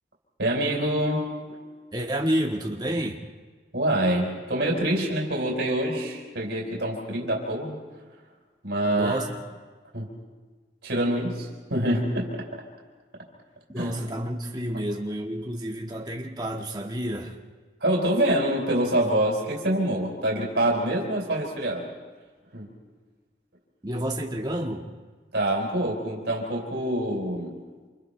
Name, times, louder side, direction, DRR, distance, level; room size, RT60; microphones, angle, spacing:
voice 1, 0.4-1.6 3.7-7.8 8.6-9.2 9.9-10.1 10.8-12.6 13.8-13.9 17.8-21.9 22.5-22.7 25.3-27.5, right 1 dB, 80° right, -1 dB, 4.4 m, -26 dB
voice 2, 1.9-3.2 8.9-9.4 13.7-17.3 23.8-24.8, equal, 25° right, 0 dB, 1.7 m, -30 dB
29.0 x 27.5 x 3.4 m, 1.4 s
head